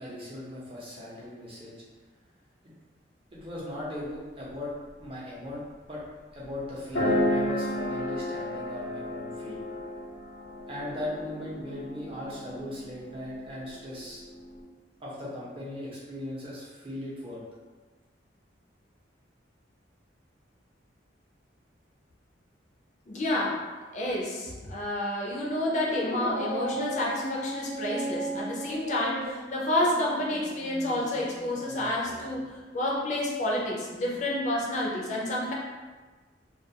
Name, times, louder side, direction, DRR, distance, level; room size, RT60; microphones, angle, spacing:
voice 1, 0.0-1.7 2.6-2.7 3.3-4.7 5.0-6.0 6.3-9.6 10.7-14.2 15.0-17.4, left 1 dB, 30° right, -6 dB, 0.6 m, -38 dB
sound 1, 6.0-6.1 6.9-14.6, left 1 dB, 85° left, 0.8 m, -33 dB
voice 2, 23.1-23.7 23.9-35.5, left 1 dB, 40° left, -3 dB, 0.4 m, -29 dB
Dog, 25.8-32.4, right 1 dB, 80° right, 0.6 m, -37 dB
2.3 x 2.3 x 2.7 m, 1.3 s
head